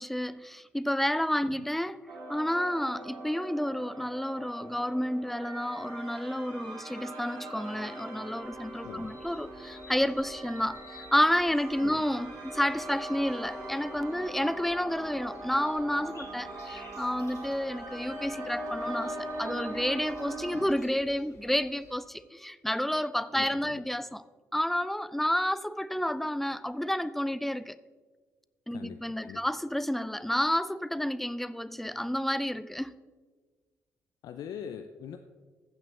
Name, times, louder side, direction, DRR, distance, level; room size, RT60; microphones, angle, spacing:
voice 1, 0.0-2.0 2.3-24.2 24.5-27.8 28.7-32.9, equal, 5° left, 0.4 m, -30 dB
sound 1, 2.1-20.7, right 1 dB, 60° right, 1.9 m, -41 dB
sound 2, 8.4-22.0, left 3 dB, 40° left, 2.5 m, -55 dB
voice 2, 23.3-23.8 28.7-29.4 34.2-35.2, left 8 dB, 60° left, 0.4 m, -43 dB
15.0 x 6.0 x 3.3 m
hypercardioid pair, 45°, 7 cm